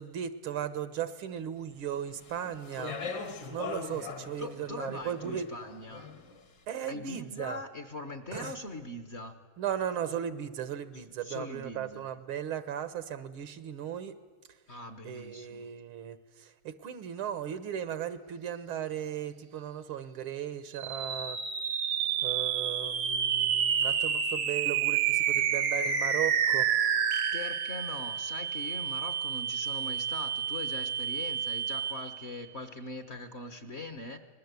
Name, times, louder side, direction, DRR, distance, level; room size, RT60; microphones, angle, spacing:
voice 1, 0.0-3.0 3.5-5.5 6.7-7.6 8.3-8.5 9.6-14.1 15.0-21.4 22.2-26.7, right 9 dB, 80° right, 12 dB, 2.0 m, -36 dB
Speech, 2.1-6.4, left 5 dB, 55° left, 2.3 m, -41 dB
voice 2, 4.4-6.1 6.9-9.4 10.9-12.0 14.7-15.6 27.3-34.2, left 2 dB, 35° left, 8 dB, 1.3 m, -41 dB
sound 1, 20.7-32.3, right 8 dB, 55° right, 1.3 m, -29 dB
25.0 x 20.5 x 8.3 m, 1.4 s
omnidirectional pair, 2.3 m